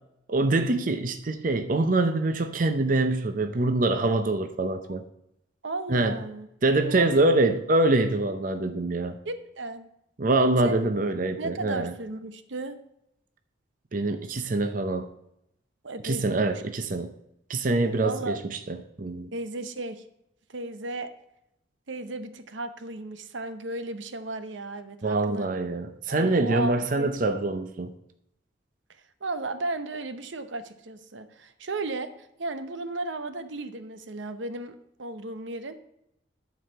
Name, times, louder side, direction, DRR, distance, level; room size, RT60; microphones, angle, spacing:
voice 1, 0.3-5.0 5.9-6.2 6.6-9.2 10.2-11.9 13.9-15.1 16.0-17.1 17.5-19.3 25.0-27.9, right 2 dB, 45° right, 8 dB, 0.6 m, -25 dB
voice 2, 5.6-6.5 6.8-7.3 9.2-9.9 10.6-10.9 11.4-12.8 15.8-16.6 18.0-18.4 19.3-20.0 20.5-21.1 21.9-25.5 26.1-27.1 29.2-32.1 32.4-35.8, right 2 dB, 80° right, 10 dB, 0.8 m, -35 dB
11.5 x 4.8 x 6.6 m, 0.81 s
head